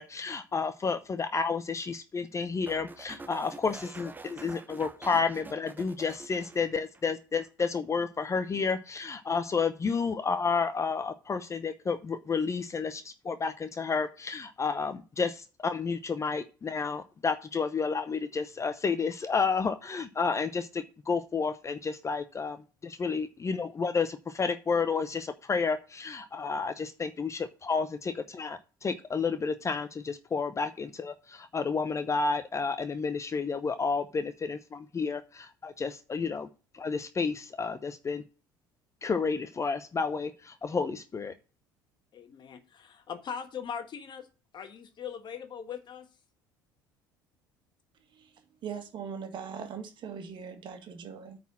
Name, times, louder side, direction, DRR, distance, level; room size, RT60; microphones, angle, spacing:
voice 1, 0.0-36.5 36.7-38.2 39.0-41.3, left 5 dB, 25° left, 0.8 m, -31 dB
sound 1, 2.7-7.1 7.4-7.8, right 3 dB, 15° right, 0.8 m, -47 dB
voice 2, 42.1-44.3 44.5-46.1, left 7 dB, 45° left, 1.4 m, -40 dB
voice 3, 48.1-51.4, right 7 dB, 45° right, 2.0 m, -41 dB
9.2 x 4.3 x 7.3 m
hypercardioid pair, 65°, 11 cm